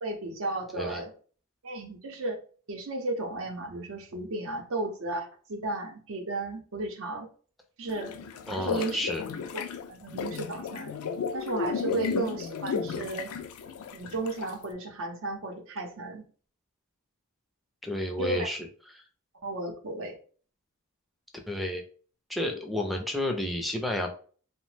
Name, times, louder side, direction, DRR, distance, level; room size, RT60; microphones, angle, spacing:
voice 1, 0.0-1.1 1.6-2.4 2.7-7.3 7.8-8.2 8.6-9.0 9.5-9.6 9.9-10.9 11.3-13.3 13.9-16.3 18.2-18.5 19.4-20.1, right 2 dB, 65° right, 4 dB, 0.6 m, -34 dB
voice 2, 0.7-1.0 8.5-9.2 11.9-12.0 17.8-18.7 18.9-19.0 21.5-21.8 22.3-24.1, left 1 dB, ahead, 1 dB, 0.4 m, -31 dB
sound 1, 7.9-14.6, left 6 dB, 70° left, 0.3 m, -34 dB
2.8 x 2.1 x 3.1 m, 0.42 s
head